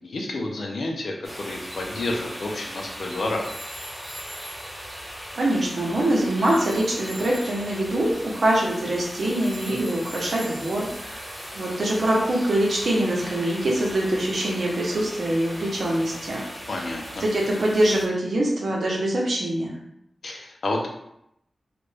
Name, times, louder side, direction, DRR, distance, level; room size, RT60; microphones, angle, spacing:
voice 1, 0.0-3.5 16.7-17.2 20.2-20.9, left 2 dB, 70° left, 0 dB, 0.7 m, -30 dB
sound 1, 1.2-18.1, equal, 5° right, 1.0 m, -38 dB
Telephone, 3.4-6.2 6.4-11.7, equal, 25° left, 0.8 m, -45 dB
voice 2, 5.4-11.2 11.5-16.4 17.2-19.7, right 1 dB, 65° right, -3 dB, 0.9 m, -24 dB
3.3 x 2.5 x 3.3 m, 0.78 s
wide cardioid pair, 115°, 0 cm